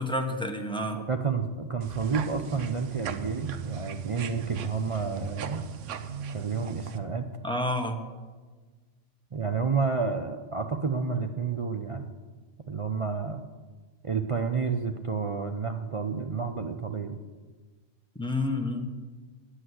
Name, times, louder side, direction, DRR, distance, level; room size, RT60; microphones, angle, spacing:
voice 1, 0.0-1.0 7.4-8.0 18.2-18.9, left 1 dB, 5° left, 3 dB, 0.9 m, -29 dB
voice 2, 0.9-5.7 6.3-7.3 9.3-12.1 12.7-13.4 14.0-17.2, right 5 dB, 50° right, 5 dB, 0.4 m, -30 dB
sound 1, 1.8-7.0, right 7 dB, 75° right, 1.0 m, -38 dB
9.7 x 8.3 x 7.8 m, 1.4 s
omnidirectional pair, 1.3 m